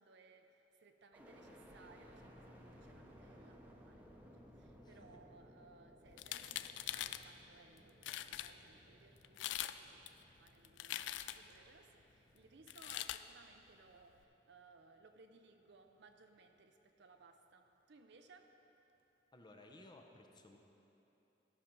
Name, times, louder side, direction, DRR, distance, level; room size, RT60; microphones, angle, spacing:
voice 1, 0.0-18.5, right 3 dB, 65° right, 6 dB, 0.6 m, -64 dB
sound 1, 1.1-15.1 15.6-16.4, equal, 10° right, 0.8 m, -61 dB
voice 2, 4.8-5.2 19.3-20.6, left 2 dB, 25° left, 3 dB, 0.7 m, -59 dB
sound 2, 6.1-7.2 7.8-8.5 9.2-9.8 10.1-11.5 12.7-13.2, left 13 dB, 70° left, 0.3 m, -42 dB
13.0 x 5.9 x 5.3 m, 3.0 s
head